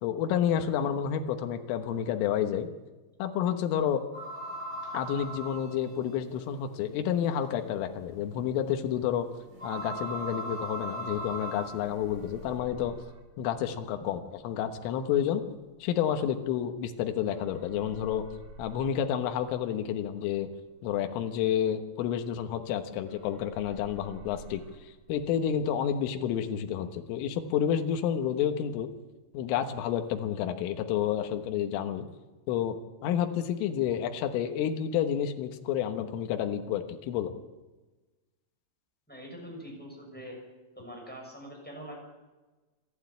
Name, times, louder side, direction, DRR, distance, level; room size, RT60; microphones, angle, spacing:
voice 1, 0.0-2.7 3.2-4.0 4.9-9.3 9.6-12.9 13.4-15.4 15.8-18.3 18.6-20.5 20.8-28.9 29.3-32.1 32.5-32.8 33.0-37.4, left 9 dB, 80° left, 6 dB, 3.8 m, -30 dB
sound 1, 4.1-12.6, right 1 dB, 20° right, 4.6 m, -40 dB
sound 2, 7.9-11.2 11.5-17.0 17.3-22.8 23.1-25.4, right 2 dB, 70° right, 6.8 m, -53 dB
voice 2, 39.1-40.4 40.7-42.0, equal, ahead, 0 dB, 5.7 m, -43 dB
27.0 x 12.0 x 8.6 m, 1.2 s
omnidirectional pair, 5.9 m